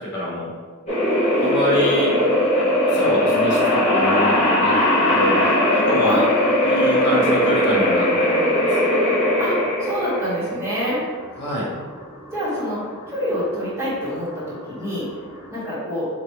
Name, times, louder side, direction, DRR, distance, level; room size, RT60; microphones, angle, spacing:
voice 1, 0.1-0.5 1.4-2.1 2.9-5.5 5.7-6.2 6.6-8.7 11.4-11.6, left 1 dB, 55° left, -5 dB, 1.0 m, -25 dB
sound 1, 0.9-15.4, left 1 dB, 30° left, 1.2 m, -19 dB
voice 2, 1.4-1.9 6.0-6.5 9.4-9.5 9.8-11.0 12.3-15.1 15.5-16.1, equal, 10° right, -10 dB, 1.5 m, -27 dB
4.5 x 2.9 x 3.2 m, 1.5 s
head